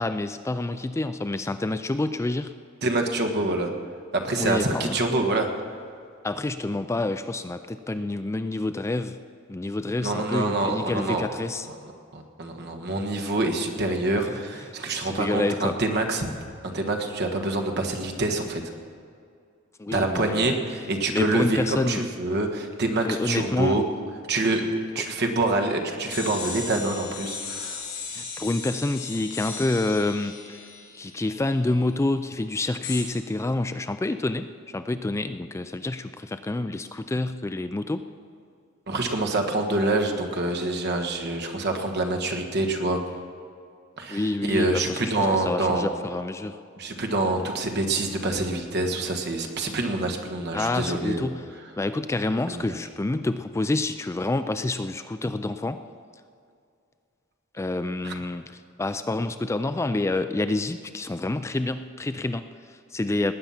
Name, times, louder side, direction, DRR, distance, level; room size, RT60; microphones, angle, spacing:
voice 1, 0.0-2.5 4.3-5.0 6.2-9.2 9.5-11.7 14.3-14.4 15.0-15.8 19.8-20.6 21.1-22.1 23.0-23.8 28.1-30.6 30.9-38.0 44.1-46.6 50.5-51.5 51.8-55.8 57.5-63.3, left 2 dB, 15° left, 10 dB, 0.3 m, -28 dB
voice 2, 2.8-3.7 4.2-5.5 10.0-11.3 12.1-16.3 16.6-18.6 19.9-23.8 24.3-24.7 24.9-27.8 38.9-43.0 44.0-45.9 46.8-51.2 52.5-52.8 58.0-58.1, right 2 dB, 55° right, 4 dB, 1.6 m, -26 dB
sound 1, 26.1-31.8 32.8-33.0, left 5 dB, 60° left, 4.5 m, -37 dB
19.0 x 9.0 x 5.7 m, 2.3 s
head